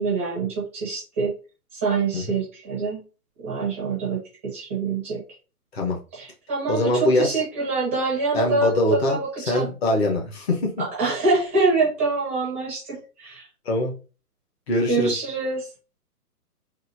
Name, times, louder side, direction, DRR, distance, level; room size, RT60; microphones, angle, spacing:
voice 1, 0.0-1.3 1.7-3.0 3.4-5.2 6.1-9.7 10.8-13.5 14.9-15.7, right 3 dB, 10° right, -5 dB, 0.6 m, -25 dB
voice 2, 6.7-7.4 8.3-9.2 9.5-10.7 13.6-13.9 14.7-15.1, left 1 dB, 40° left, 1 dB, 1.1 m, -22 dB
4.1 x 2.6 x 2.6 m, 0.34 s
hypercardioid pair, 150°, 47 cm